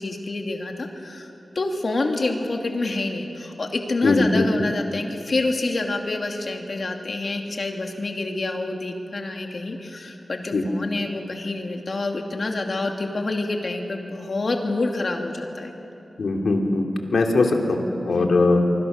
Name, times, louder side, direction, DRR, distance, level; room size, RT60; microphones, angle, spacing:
voice 1, 0.0-15.7 18.2-18.3, left 2 dB, 55° left, 2 dB, 2.6 m, -27 dB
voice 2, 4.0-4.7 10.5-10.6 16.2-16.9 17.1-18.6, left 3 dB, 85° left, 2 dB, 2.6 m, -20 dB
25.5 x 24.0 x 6.6 m, 2.9 s
wide cardioid pair, 90°, 0 cm